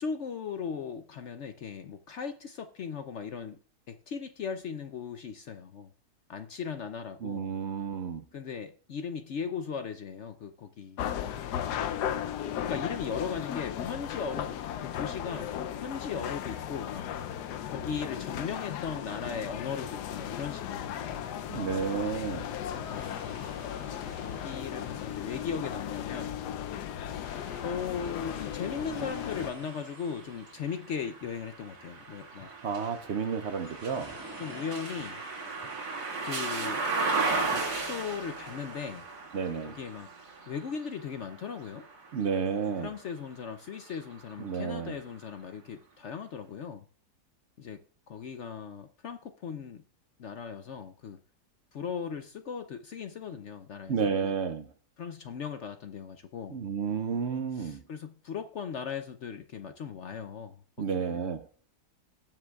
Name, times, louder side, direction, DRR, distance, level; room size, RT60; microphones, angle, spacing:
voice 1, 0.0-3.6 3.9-5.9 6.3-7.5 8.3-11.1 11.8-12.2 12.7-15.5 15.8-17.1 17.7-21.1 22.7-23.2 23.9-26.4 27.1-32.5 34.4-35.2 36.2-36.8 37.4-39.0 39.6-40.1 40.5-41.8 42.8-46.8 47.6-47.8 48.1-49.8 50.2-51.2 51.7-54.3 55.0-56.6 57.5-61.2, left 6 dB, 60° left, 0.8 m, -38 dB
voice 2, 7.2-8.2 21.5-22.5 32.4-34.2 39.3-39.8 42.1-42.9 44.4-44.9 53.9-54.7 56.5-57.8 60.8-61.5, right 6 dB, 60° right, 0.7 m, -31 dB
sound 1, 11.0-29.5, left 10 dB, 85° left, 1.2 m, -36 dB
sound 2, 22.9-37.3, right 1 dB, 15° right, 1.5 m, -53 dB
sound 3, 27.2-43.2 43.7-45.0, right 3 dB, 85° right, 2.8 m, -37 dB
18.5 x 7.7 x 2.3 m
omnidirectional pair, 1.7 m